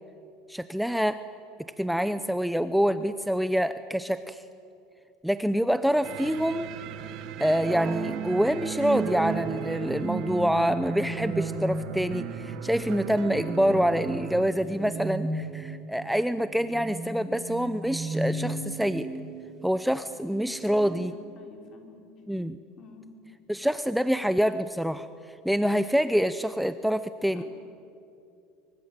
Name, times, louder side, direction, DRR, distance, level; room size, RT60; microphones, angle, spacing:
voice 1, 0.5-1.2 1.8-4.4 5.2-6.7 7.4-19.1 19.6-21.1 22.3-22.6 23.5-25.1 25.4-27.4, equal, ahead, 12 dB, 0.7 m, -26 dB
sound 1, 5.8-21.1, right 3 dB, 30° right, 2.7 m, -36 dB
sound 2, 6.0-14.5, right 9 dB, 55° right, 1.7 m, -39 dB
voice 2, 20.9-22.1 22.8-23.1 27.3-27.4, left 5 dB, 40° left, 3 dB, 5.1 m, -49 dB
25.5 x 24.0 x 9.0 m, 2.5 s
supercardioid pair, 130°, 0 cm